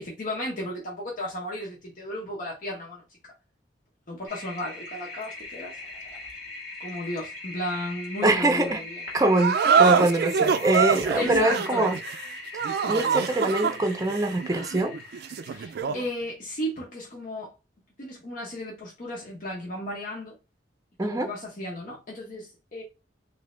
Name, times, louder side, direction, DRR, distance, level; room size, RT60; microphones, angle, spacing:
voice 1, 0.0-3.0 4.1-5.8 6.8-9.0 9.8-10.0 11.1-11.9 15.5-17.5 18.0-20.4 21.0-22.8, left 1 dB, 50° left, 1.0 m, -34 dB
Toilet flush, 4.3-15.8, left 3 dB, 65° left, 1.5 m, -40 dB
voice 2, 8.2-8.8 9.1-12.0 12.9-14.9 21.0-21.3, right 2 dB, 20° right, 0.6 m, -24 dB
sound 1, 9.4-16.1, right 6 dB, 60° right, 0.3 m, -25 dB
3.3 x 2.7 x 3.2 m
head